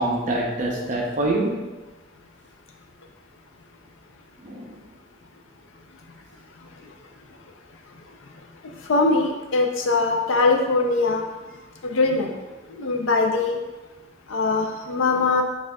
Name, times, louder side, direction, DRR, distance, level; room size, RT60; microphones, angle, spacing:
voice 1, 0.0-1.7 4.4-4.8, right 2 dB, 40° right, -1 dB, 0.6 m, -25 dB
voice 2, 8.6-11.2 11.8-12.3 12.7-13.6 14.3-15.4, left 3 dB, 75° left, 3 dB, 0.5 m, -22 dB
6.3 x 2.4 x 2.2 m, 1.2 s
head